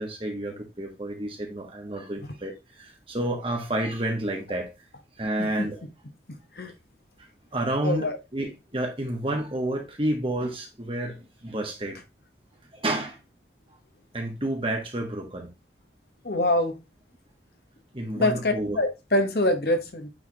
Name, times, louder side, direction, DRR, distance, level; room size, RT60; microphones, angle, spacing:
voice 1, 0.0-4.7 5.2-5.8 7.5-12.0 12.7-13.2 14.1-15.5 17.9-18.8, right 1 dB, 30° right, 1.5 m, -30 dB
voice 2, 7.8-8.2 16.2-16.8 18.2-20.1, left 1 dB, 60° left, 1.1 m, -25 dB
9.0 x 3.6 x 3.4 m
head